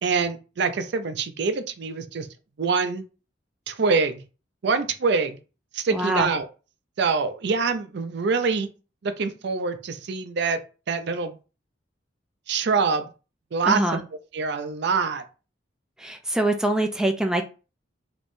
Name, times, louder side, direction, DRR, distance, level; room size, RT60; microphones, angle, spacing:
voice 1, 0.0-2.3 2.6-3.0 3.7-4.2 4.6-5.4 5.7-6.5 7.0-8.7 9.0-10.6 10.9-11.4 12.5-13.1 13.5-14.0 14.3-15.2, right 4 dB, 65° right, 10 dB, 0.5 m, -25 dB
voice 2, 5.9-6.3 13.6-14.0 16.0-17.4, right 1 dB, 5° right, 4 dB, 0.3 m, -24 dB
3.5 x 2.9 x 2.6 m, 0.33 s
head